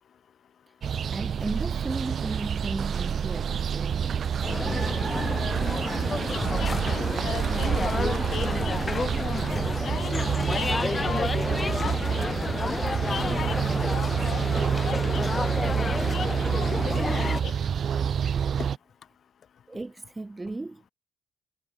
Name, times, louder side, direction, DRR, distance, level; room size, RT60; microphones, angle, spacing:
sound 1, 0.8-18.8, right 7 dB, 55° right, 0.5 m, -28 dB
voice 1, 1.1-4.3 19.7-20.8, right 2 dB, 20° right, 0.8 m, -35 dB
sound 2, 4.4-17.4, left 3 dB, 25° left, 0.5 m, -30 dB
voice 2, 6.3-9.5 9.8-12.2 12.8-14.5 14.8-15.6 16.0-17.6 18.6-18.7, left 8 dB, 60° left, 1.6 m, -39 dB
cardioid pair, 90°, 0 cm